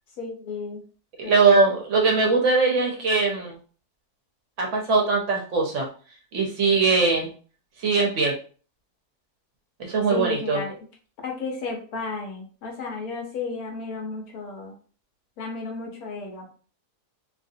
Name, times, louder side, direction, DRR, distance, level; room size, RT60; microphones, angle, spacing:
voice 1, 0.2-0.8 1.2-1.8 10.1-10.7 11.2-14.7 15.4-16.4, left 4 dB, 75° left, 1 dB, 1.3 m, -33 dB
voice 2, 1.2-3.6 4.6-5.9 6.3-7.3 7.8-8.3 9.8-10.6, right 4 dB, 60° right, 0 dB, 0.9 m, -21 dB
2.8 x 2.5 x 2.6 m, 0.40 s
omnidirectional pair, 1.6 m